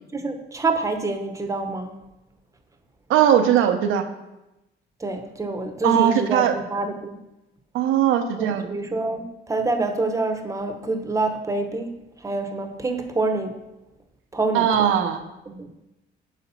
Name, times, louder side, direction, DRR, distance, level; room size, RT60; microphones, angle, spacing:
voice 1, 0.1-2.0 5.0-7.2 8.4-12.0 12.2-13.5 14.3-14.9 15.5-15.7, right 3 dB, 15° right, 6 dB, 0.8 m, -26 dB
voice 2, 3.1-4.0 5.8-6.5 7.7-8.7 14.5-15.2, right 9 dB, 90° right, 7 dB, 0.6 m, -19 dB
4.9 x 4.1 x 5.5 m, 0.95 s
cardioid pair, 90°, 20 cm